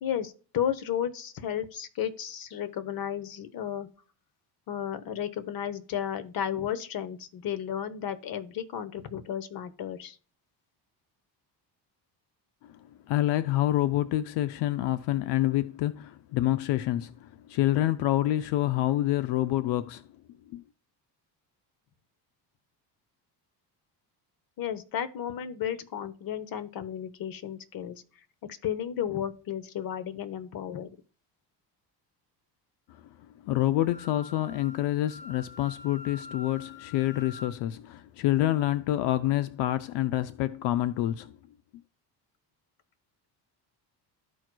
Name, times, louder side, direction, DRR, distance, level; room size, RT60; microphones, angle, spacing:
voice 1, 0.0-3.9 4.7-10.2 24.6-28.0 28.4-30.9, left 9 dB, 55° left, 0.9 m, -33 dB
voice 2, 13.1-20.0 20.5-20.6 33.4-41.3, left 14 dB, 90° left, 0.5 m, -27 dB
Wind instrument woodwind instrument, 33.8-37.5, left 3 dB, 15° left, 1.1 m, -46 dB
13.5 x 4.6 x 2.2 m
cardioid pair, 130°, 41 cm